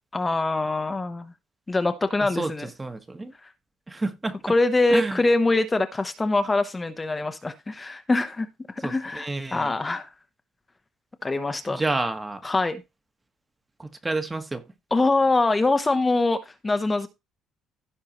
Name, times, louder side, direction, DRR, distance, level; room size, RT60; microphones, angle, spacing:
voice 1, 0.1-1.3 1.7-2.7 3.4-3.5 4.4-10.1 11.2-11.8 12.4-12.8 14.9-17.1, left 2 dB, 15° left, 0.8 m, -24 dB
voice 2, 2.8-3.3 3.9-4.4 4.9-5.2 8.8-9.7 11.7-12.4 13.8-14.6, right 2 dB, 15° right, 1.3 m, -29 dB
15.5 x 5.5 x 3.0 m
cardioid pair, 125°, 0 cm